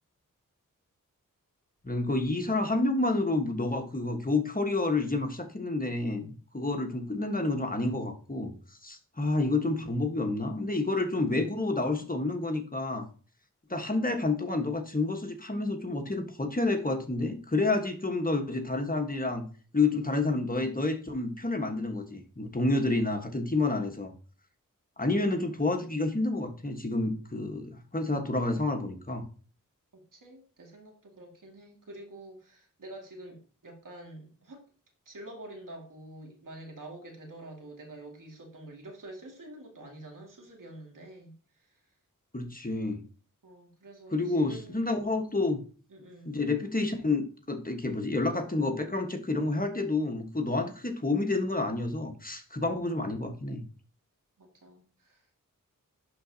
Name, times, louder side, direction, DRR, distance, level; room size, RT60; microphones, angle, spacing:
voice 1, 1.8-8.5 8.8-13.1 13.7-19.4 19.7-24.1 25.0-29.2 42.3-43.0 44.1-45.6 46.3-53.6, left 2 dB, 25° left, 4 dB, 1.3 m, -29 dB
voice 2, 29.9-34.6 35.1-41.8 43.4-44.8 45.9-46.4 54.4-55.4, right 1 dB, 65° right, 1 dB, 2.1 m, -47 dB
11.0 x 3.9 x 2.7 m, 0.39 s
cardioid pair, 45°, 34 cm